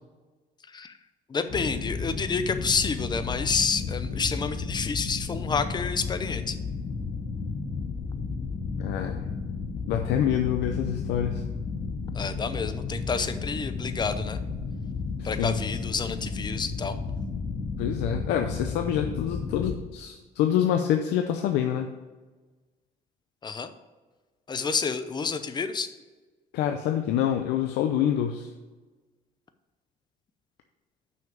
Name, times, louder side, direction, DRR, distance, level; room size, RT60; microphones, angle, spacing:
voice 1, 1.3-6.6 12.1-14.4 15.2-17.0 23.4-23.7 24.5-25.9, left 5 dB, 25° left, 10 dB, 0.7 m, -29 dB
sound 1, 1.5-19.8, left 4 dB, 50° left, 1.5 m, -33 dB
voice 2, 8.8-9.2 9.9-11.4 15.2-15.6 17.8-21.9 26.5-28.5, left 10 dB, 85° left, 6 dB, 0.6 m, -26 dB
6.2 x 5.7 x 7.0 m, 1.3 s
cardioid pair, 110°, 17 cm